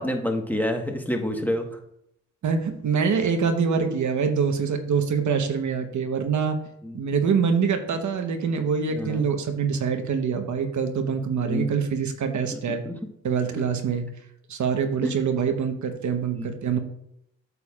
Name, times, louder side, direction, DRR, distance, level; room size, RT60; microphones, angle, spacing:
voice 1, 0.0-1.7 3.8-3.9 6.8-7.0 8.9-9.3 11.4-11.7 12.5-12.9 13.5-13.6 15.0-15.1 16.3-16.5, left 1 dB, 5° left, 3 dB, 1.3 m, -28 dB
voice 2, 2.4-6.6 6.9-12.8 13.2-14.1 14.5-16.8, right 6 dB, 70° right, 6 dB, 1.1 m, -25 dB
8.3 x 6.9 x 2.4 m, 0.76 s
cardioid pair, 70°, 31 cm